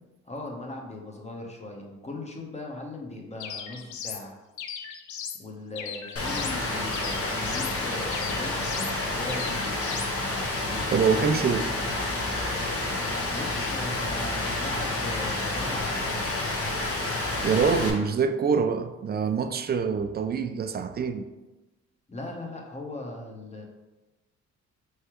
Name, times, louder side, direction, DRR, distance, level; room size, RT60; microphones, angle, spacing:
voice 1, 0.2-4.4 5.4-11.5 13.4-16.2 22.1-23.6, left 2 dB, 20° left, 1 dB, 0.9 m, -39 dB
sound 1, 3.4-4.2 4.6-5.4 5.7-6.6 6.9-7.8 8.1-8.9 9.3-10.1, left 8 dB, 75° left, 0.5 m, -37 dB
Rain, 6.2-17.9, left 2 dB, 50° left, 0.9 m, -29 dB
voice 2, 10.9-11.7 17.4-21.3, right 6 dB, 35° right, 8 dB, 0.4 m, -25 dB
4.6 x 3.2 x 3.0 m, 1.1 s
cardioid pair, 90°, 30 cm